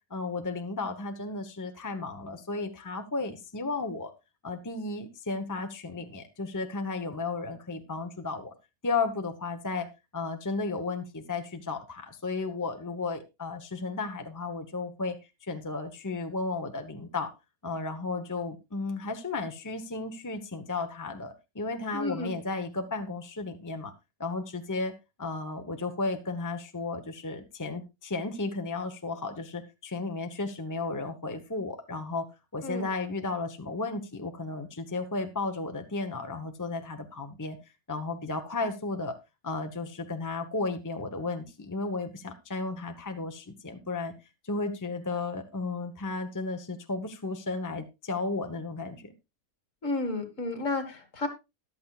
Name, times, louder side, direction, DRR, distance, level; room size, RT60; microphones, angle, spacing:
voice 1, 0.1-4.1 4.4-8.5 8.8-15.2 15.4-17.3 17.6-23.9 24.2-32.3 32.5-37.6 37.9-39.2 39.4-44.1 44.4-49.1, left 3 dB, 15° left, 6 dB, 1.0 m, -34 dB
voice 2, 21.9-22.3 32.6-32.9 49.8-51.3, left 2 dB, 60° left, 7 dB, 2.5 m, -32 dB
14.5 x 11.5 x 2.4 m, 0.24 s
omnidirectional pair, 1.5 m